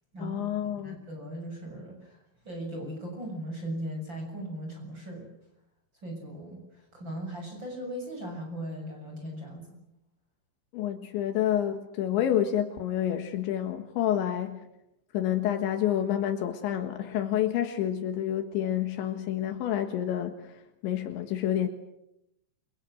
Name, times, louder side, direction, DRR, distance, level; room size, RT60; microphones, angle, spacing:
voice 1, 0.2-1.0 10.7-14.6 15.1-20.5 20.8-21.7, left 11 dB, 80° left, 3.9 m, -28 dB
voice 2, 0.8-2.1 2.4-5.3 6.0-6.6 6.9-9.8, right 1 dB, 25° right, 7.6 m, -38 dB
29.0 x 24.0 x 7.9 m
omnidirectional pair, 5.2 m